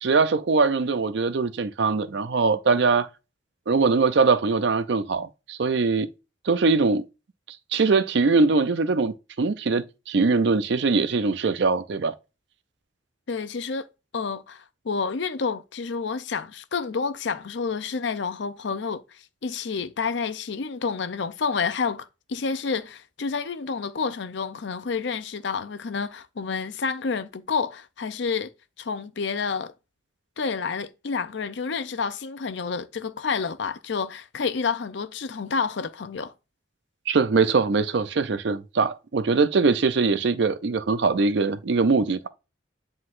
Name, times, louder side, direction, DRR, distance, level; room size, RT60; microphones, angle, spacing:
voice 1, 0.0-3.1 3.7-6.1 6.5-7.0 7.7-12.1 37.1-42.3, right 4 dB, 60° right, 0.5 m, -22 dB
voice 2, 13.3-13.9 14.1-28.5 28.8-29.7 30.4-36.3, left 5 dB, 65° left, 0.5 m, -29 dB
9.7 x 3.9 x 2.5 m
head